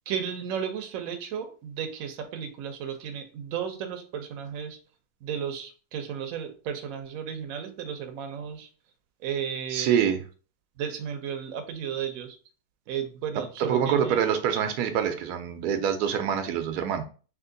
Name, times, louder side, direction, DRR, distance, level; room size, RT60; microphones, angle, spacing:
voice 1, 0.1-4.8 5.2-8.7 9.2-10.1 10.8-12.4 12.9-14.2, right 8 dB, 70° right, 6 dB, 1.0 m, -34 dB
voice 2, 9.7-10.2 13.6-17.1, right 8 dB, 85° right, 7 dB, 1.2 m, -25 dB
3.5 x 2.9 x 3.8 m, 0.37 s
omnidirectional pair, 1.6 m